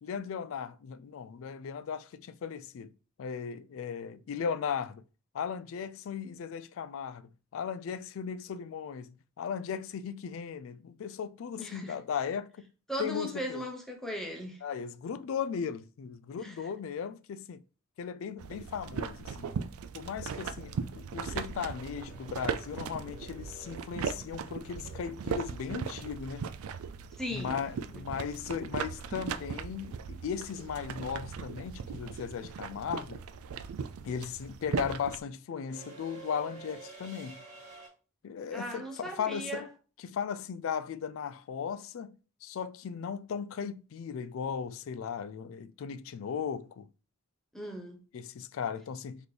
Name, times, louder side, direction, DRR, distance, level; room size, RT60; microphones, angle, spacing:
voice 1, 0.0-2.9 3.2-5.0 5.3-12.7 13.0-13.6 14.6-17.6 18.0-19.5 19.9-26.5 27.3-33.2 34.0-37.4 38.2-39.7 40.0-42.1 42.4-46.9 48.1-49.3, left 7 dB, 65° left, 0.3 m, -37 dB
voice 2, 11.6-11.9 12.9-14.6 16.4-16.6 27.1-27.7 27.9-28.0 38.5-39.7 47.5-48.0, equal, ahead, 0.9 m, -38 dB
sound 1, 18.4-35.2, right 6 dB, 85° right, 0.4 m, -38 dB
sound 2, 21.7-25.7 28.1-28.2 29.5-29.8 30.1-37.9, right 4 dB, 35° right, 1.7 m, -52 dB
4.1 x 3.0 x 3.3 m
head